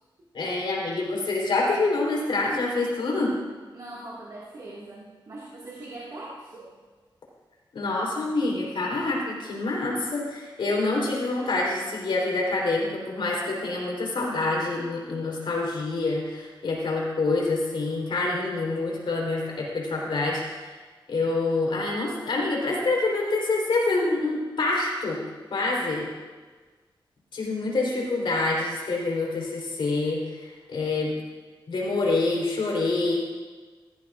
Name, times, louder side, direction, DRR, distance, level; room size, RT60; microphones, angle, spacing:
voice 1, 0.3-3.3 7.7-20.7 21.1-25.2 25.5-26.1 27.3-31.1 31.7-33.4, left 2 dB, 85° left, -3 dB, 3.6 m, -26 dB
voice 2, 3.7-6.7, right 2 dB, 50° right, -6 dB, 1.9 m, -41 dB
16.0 x 14.0 x 2.5 m, 1.4 s
wide cardioid pair, 145°, 9 cm